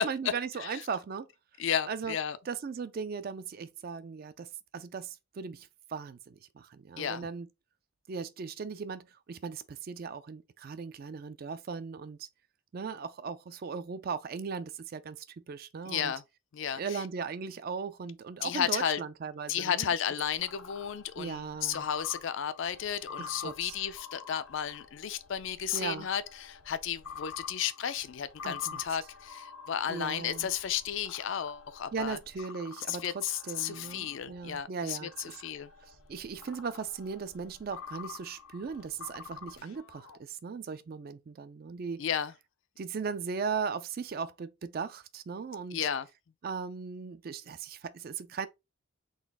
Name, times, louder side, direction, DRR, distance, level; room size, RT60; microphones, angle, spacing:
voice 1, 0.0-1.3 1.9-2.2 2.5-7.5 8.1-12.3 12.7-16.1 16.7-19.9 21.2-21.9 23.2-23.8 25.7-26.1 28.4-29.0 29.9-30.5 31.9-35.4 35.8-42.1 42.8-45.9 46.4-48.5, right 5 dB, 45° right, 0.3 m, -38 dB
voice 2, 1.6-2.4 7.0-7.3 15.9-16.2 16.5-17.0 18.4-19.0 19.5-32.2 32.9-35.1 35.4-35.7 42.0-42.3 45.7-46.1, left 8 dB, 60° left, 0.4 m, -33 dB
sound 1, 20.2-34.6 35.1-40.2, left 6 dB, 90° left, 0.7 m, -48 dB
3.9 x 2.4 x 3.5 m
head